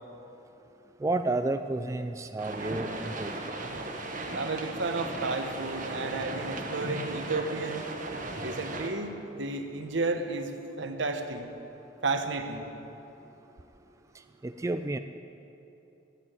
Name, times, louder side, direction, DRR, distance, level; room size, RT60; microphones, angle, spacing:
voice 1, 1.0-3.4 14.4-15.0, right 2 dB, 15° right, 8 dB, 0.3 m, -31 dB
London City Hall, 2.4-8.9, right 2 dB, 45° right, 1.4 m, -36 dB
voice 2, 4.3-7.9 8.4-10.5 10.8-11.5 12.0-12.7, right 3 dB, 75° right, 6 dB, 1.2 m, -32 dB
13.0 x 9.3 x 8.9 m, 2.9 s
head